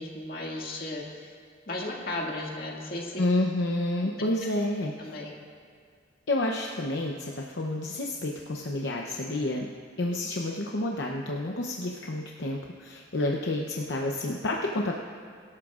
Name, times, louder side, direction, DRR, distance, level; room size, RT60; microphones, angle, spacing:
voice 1, 0.0-1.4 1.7-3.2 5.0-5.4 10.3-10.4, left 2 dB, 55° left, -2 dB, 2.1 m, -35 dB
voice 2, 3.2-5.2 6.3-9.7 10.0-15.0, left 1 dB, 75° left, 0 dB, 0.8 m, -29 dB
23.5 x 12.5 x 2.5 m, 2.1 s
head